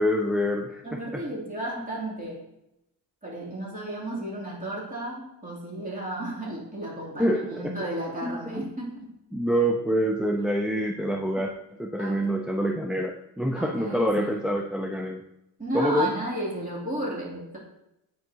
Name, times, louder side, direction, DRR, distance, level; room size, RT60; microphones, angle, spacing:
voice 1, 0.0-1.2 7.2-7.7 8.2-8.6 9.3-11.5 11.8-15.2 15.7-16.1, equal, ahead, 2 dB, 0.3 m, -26 dB
voice 2, 0.8-2.4 3.2-9.1 12.0-12.4 13.6-14.5 15.6-17.6, right 1 dB, 25° right, -5 dB, 2.6 m, -33 dB
9.2 x 4.5 x 2.7 m, 0.84 s
cardioid pair, 115°, 36 cm